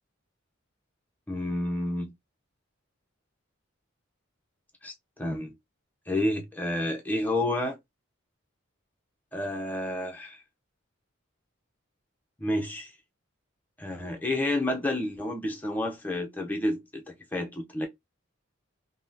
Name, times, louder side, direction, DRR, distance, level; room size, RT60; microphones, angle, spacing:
voice 1, 1.3-2.1 4.8-5.5 6.1-7.8 9.3-10.4 12.4-12.9 13.8-17.9, left 1 dB, 10° left, 0.6 m, -30 dB
3.5 x 2.1 x 2.6 m
head